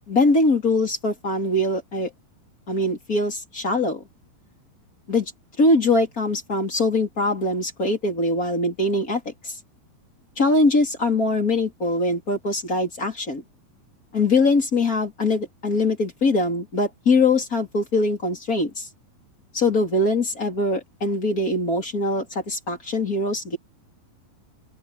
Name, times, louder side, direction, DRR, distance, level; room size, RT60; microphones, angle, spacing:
voice 1, 0.1-2.1 2.7-4.0 5.1-5.3 5.6-9.5 10.4-13.4 14.1-18.9 19.5-23.6, left 2 dB, 25° left, 3.3 m, -22 dB
open air
omnidirectional pair, 4.5 m